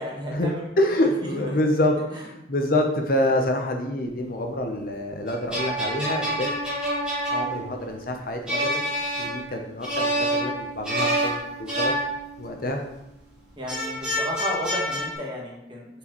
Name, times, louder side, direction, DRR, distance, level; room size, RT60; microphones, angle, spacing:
voice 1, 0.0-0.6 1.3-1.4 2.1-2.2 13.6-15.9, equal, 25° right, -2 dB, 1.3 m, -32 dB
voice 2, 0.8-6.5 7.3-8.8 9.2-11.9 12.4-12.8, left 1 dB, 50° left, 3 dB, 0.7 m, -26 dB
sound 1, 5.3-12.7 13.7-15.1, right 1 dB, 5° right, 1.7 m, -28 dB
6.9 x 4.6 x 3.0 m, 0.85 s
head